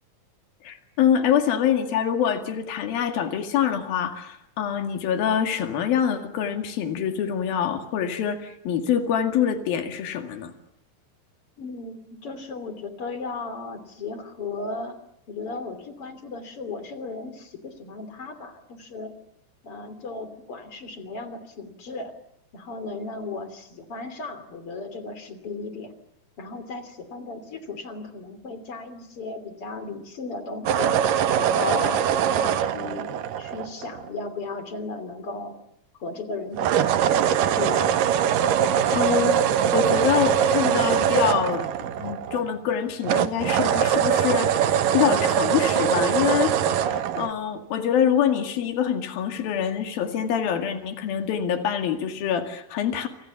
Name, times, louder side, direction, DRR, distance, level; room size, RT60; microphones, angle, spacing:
voice 1, 0.6-10.5 38.9-39.4 39.7-41.7 42.0-53.1, left 8 dB, 85° left, 6 dB, 4.0 m, -25 dB
voice 2, 11.6-15.0 15.3-19.1 19.6-22.1 22.5-25.9 26.4-30.9 31.4-35.5 36.0-37.9, left 3 dB, 40° left, 11 dB, 3.8 m, -35 dB
sound 1, 30.7-34.1 36.6-42.7 43.0-47.3, right 9 dB, 75° right, 2.8 m, -22 dB
28.0 x 26.5 x 7.2 m, 0.78 s
omnidirectional pair, 4.1 m